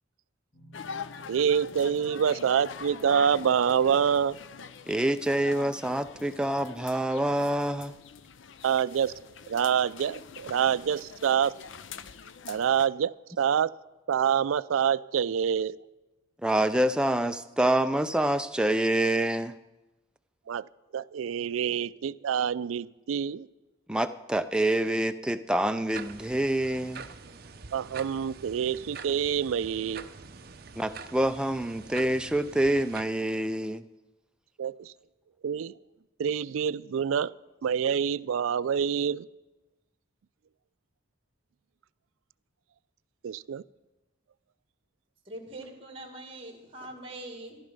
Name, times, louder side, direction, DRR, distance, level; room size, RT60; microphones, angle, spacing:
sound 1, 0.5-13.4, left 1 dB, 35° left, 2.9 m, -59 dB
sound 2, 0.7-12.9, left 6 dB, 70° left, 0.5 m, -44 dB
voice 1, 1.3-4.4 8.6-9.1 9.5-11.6 12.5-13.7 14.1-15.8 20.5-20.7 20.9-23.5 27.7-30.1 34.6-34.9 35.4-35.7 36.2-37.3 37.6-39.3 43.2-43.6, right 8 dB, 90° right, 18 dB, 0.4 m, -26 dB
voice 2, 4.9-7.9 16.4-19.6 23.9-27.1 30.8-33.9, right 1 dB, 5° right, 9 dB, 0.4 m, -26 dB
sound 3, 25.9-33.0, right 5 dB, 50° right, 0.7 m, -45 dB
voice 3, 45.2-47.6, right 1 dB, 25° right, 4 dB, 2.1 m, -42 dB
14.0 x 11.5 x 5.3 m, 1.1 s
head